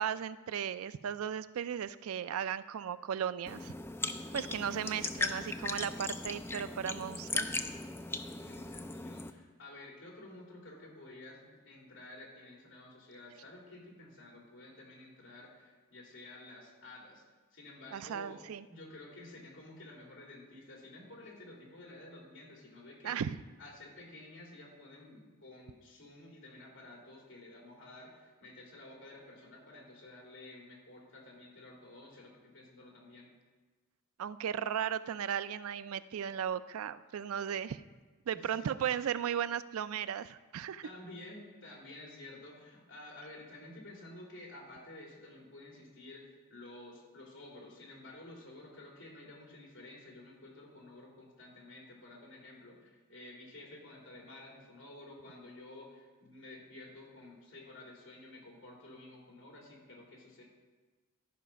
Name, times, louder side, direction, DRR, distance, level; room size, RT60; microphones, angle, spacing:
voice 1, 0.0-3.7 4.3-7.5 17.9-18.7 23.0-23.4 34.2-37.8 38.3-40.8, right 8 dB, 85° right, 15 dB, 0.3 m, -36 dB
sound 1, 3.5-9.3, left 3 dB, 10° left, 0.3 m, -38 dB
voice 2, 8.4-17.2 17.5-18.4 18.7-23.2 23.6-33.3 38.3-38.8 40.8-60.4, left 2 dB, 60° left, -2 dB, 2.8 m, -52 dB
12.5 x 5.0 x 5.7 m, 1.3 s
head